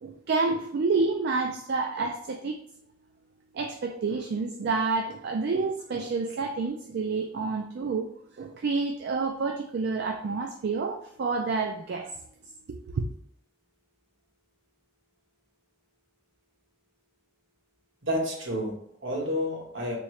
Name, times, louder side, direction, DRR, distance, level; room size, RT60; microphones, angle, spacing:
voice 1, 0.0-2.6 3.5-8.1 8.4-12.1 12.9-13.1, right 4 dB, 60° right, 3 dB, 0.4 m, -29 dB
voice 2, 18.0-20.0, equal, 75° right, -1 dB, 1.2 m, -30 dB
3.6 x 3.0 x 3.1 m, 0.67 s
head